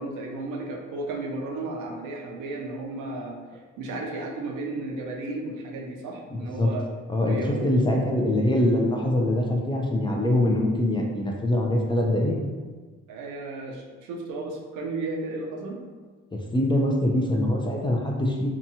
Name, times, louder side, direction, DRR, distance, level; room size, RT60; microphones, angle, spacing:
voice 1, 0.0-6.8 7.2-7.7 13.1-15.8, right 2 dB, 80° right, 1 dB, 0.6 m, -34 dB
voice 2, 7.1-12.3 16.3-18.5, left 1 dB, 15° left, -1 dB, 0.4 m, -23 dB
2.8 x 2.3 x 2.7 m, 1.4 s
cardioid pair, 90°, 30 cm